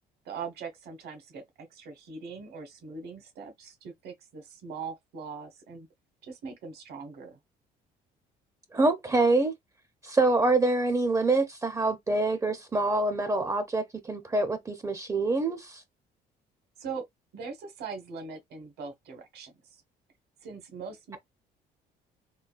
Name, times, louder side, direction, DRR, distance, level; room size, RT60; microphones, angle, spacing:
voice 1, 0.2-5.9 6.2-7.4 16.8-17.0 17.3-19.8 20.4-21.2, right 5 dB, 70° right, 1.3 m, -41 dB
voice 2, 8.7-9.5 10.0-15.8, right 2 dB, 20° right, 0.5 m, -26 dB
3.8 x 2.1 x 2.4 m
cardioid pair, 110°, 17 cm